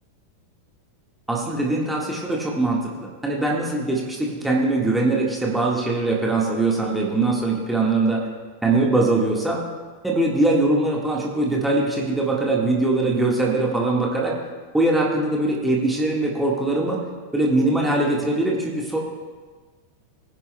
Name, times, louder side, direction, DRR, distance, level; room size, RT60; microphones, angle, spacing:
voice 1, 1.3-8.2 8.6-9.6 10.0-14.3 14.7-17.0 17.3-19.0, right 2 dB, 5° right, -2 dB, 1.7 m, -22 dB
19.5 x 10.5 x 2.3 m, 1.4 s
figure-of-eight pair, 90°, 0 cm